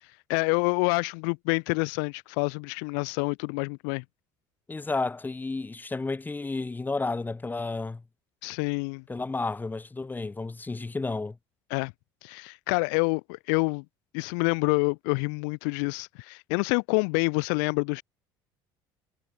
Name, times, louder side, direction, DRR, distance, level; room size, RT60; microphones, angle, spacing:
voice 1, 0.0-4.0 8.4-9.0 11.7-11.9 12.2-13.8 14.1-18.0, left 40 dB or more, 85° left, 1.4 m, -27 dB
voice 2, 4.7-8.0 9.1-11.4, left 3 dB, 15° left, 4.3 m, -31 dB
supercardioid pair, 90°, 10 cm